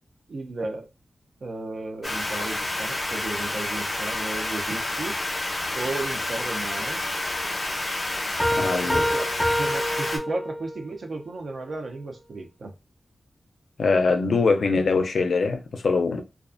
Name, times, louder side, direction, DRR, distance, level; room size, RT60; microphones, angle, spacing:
voice 1, 0.3-0.9 1.4-5.2 5.7-7.0 8.8-12.7, right 2 dB, 65° right, 0.5 m, -34 dB
sound 1, 2.0-10.2, left 2 dB, 35° left, 0.6 m, -29 dB
Piano, 8.4-10.9, equal, 5° right, 0.5 m, -26 dB
voice 2, 8.5-9.2 13.8-16.2, left 4 dB, 80° left, 0.4 m, -23 dB
2.3 x 2.3 x 2.4 m
wide cardioid pair, 125°, 0 cm